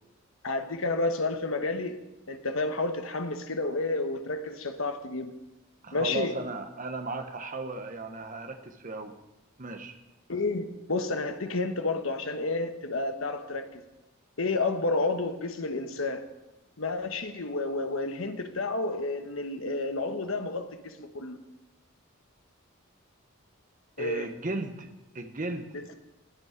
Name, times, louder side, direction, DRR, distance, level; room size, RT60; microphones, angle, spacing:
voice 1, 0.4-2.0 2.3-5.3 5.9-6.3 10.3-13.8 14.4-16.2 16.8-21.4 24.0-24.3 25.7-25.9, left 3 dB, 70° left, 7 dB, 1.1 m, -30 dB
voice 2, 5.8-9.1 9.6-9.9 24.0-24.9 25.1-25.7, right 2 dB, 35° right, 6 dB, 1.0 m, -35 dB
20.0 x 6.8 x 5.2 m, 0.98 s
head